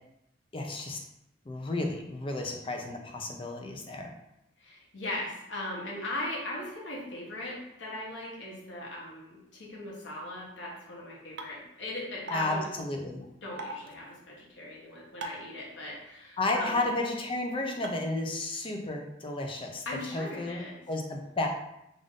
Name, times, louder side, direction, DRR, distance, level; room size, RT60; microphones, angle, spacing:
voice 1, 0.5-1.0 1.5-4.1 12.3-13.3 16.4-19.8 20.1-20.6 20.9-21.5, left 2 dB, 30° left, 2 dB, 0.5 m, -32 dB
voice 2, 4.6-12.7 13.4-16.8 19.8-20.8, left 1 dB, 85° left, -4 dB, 1.0 m, -39 dB
sound 1, 11.4-11.5 12.3-12.4 13.6-13.7 15.2-15.5 16.5-16.6 17.8-17.9, right 3 dB, 70° right, 0.5 m, -37 dB
3.6 x 2.6 x 3.6 m, 0.84 s
head